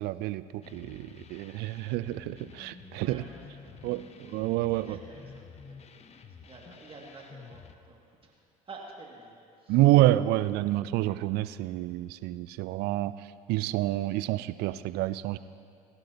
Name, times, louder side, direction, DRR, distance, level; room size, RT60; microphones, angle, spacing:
voice 1, 0.0-3.2 3.8-5.0 9.7-13.1 13.5-15.4, right 16 dB, 60° right, 15 dB, 0.5 m, -28 dB
sound 1, 0.6-7.7, left 5 dB, 35° left, 0.9 m, -50 dB
voice 2, 2.9-4.1 4.7-8.3 8.6-9.8, right 3 dB, 30° right, -2 dB, 2.2 m, -50 dB
21.5 x 11.5 x 2.9 m, 2.3 s
hypercardioid pair, 70°, 19 cm